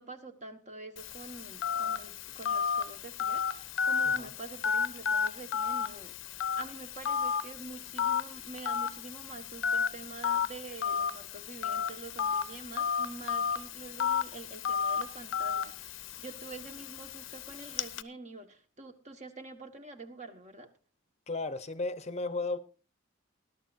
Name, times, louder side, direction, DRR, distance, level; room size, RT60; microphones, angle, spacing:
voice 1, 0.0-20.7, right 3 dB, 35° right, 1.4 m, -46 dB
Telephone, 1.0-18.0, left 7 dB, 75° left, 0.6 m, -33 dB
voice 2, 21.3-22.6, left 3 dB, 35° left, 0.7 m, -34 dB
20.5 x 12.0 x 2.6 m
head